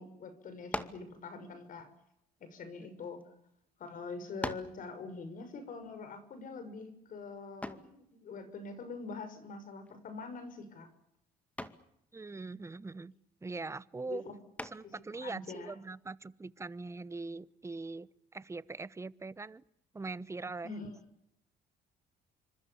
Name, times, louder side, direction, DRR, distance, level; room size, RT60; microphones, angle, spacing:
voice 1, 0.0-1.9 2.4-3.3 3.8-10.9 14.0-14.4 14.8-14.9 15.2-15.7 20.6-21.0, left 4 dB, 55° left, 10 dB, 6.3 m, -44 dB
sound 1, 0.7-1.1 2.0-3.2 3.9-4.0 4.4-4.8 7.6-8.0 9.9-10.2 10.6-11.0 11.6-11.9 14.6-15.0, left 1 dB, 10° left, 2.2 m, -41 dB
voice 2, 12.1-13.1 13.4-14.2 14.6-19.6 19.9-20.7, right 3 dB, 15° right, 18 dB, 0.9 m, -42 dB
28.5 x 25.5 x 7.2 m, 0.78 s
cardioid pair, 110°, 17 cm